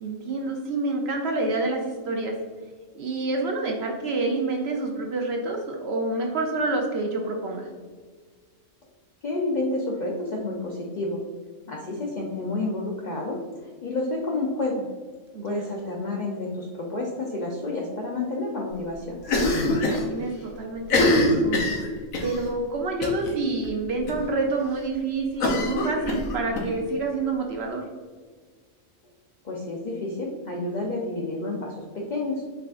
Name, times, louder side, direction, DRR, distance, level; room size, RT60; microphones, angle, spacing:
voice 1, 0.0-2.3 2.9-7.7 15.3-15.6 19.6-21.7 22.2-27.9, right 3 dB, 60° right, 1 dB, 0.8 m, -28 dB
voice 2, 9.2-11.2 11.7-14.8 15.4-19.2 29.4-32.4, left 2 dB, 55° left, -3 dB, 0.5 m, -30 dB
Cough, 19.2-20.0 20.3-20.4 20.8-22.4 23.0-23.3 23.6-23.7 24.1-24.2 25.4-26.6, left 2 dB, 85° left, 1.2 m, -23 dB
4.7 x 3.6 x 2.4 m, 1.5 s
omnidirectional pair, 1.4 m